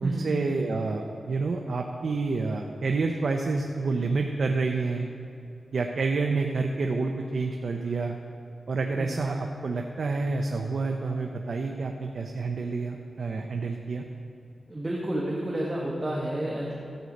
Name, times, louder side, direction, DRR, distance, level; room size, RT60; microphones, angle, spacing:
voice 1, 0.0-5.1 5.7-8.2 8.7-14.0, right 3 dB, 65° right, 3 dB, 0.6 m, -28 dB
voice 2, 14.7-16.7, right 1 dB, 20° right, -4 dB, 1.4 m, -30 dB
13.0 x 7.9 x 5.2 m, 2.6 s
wide cardioid pair, 120°, 0 cm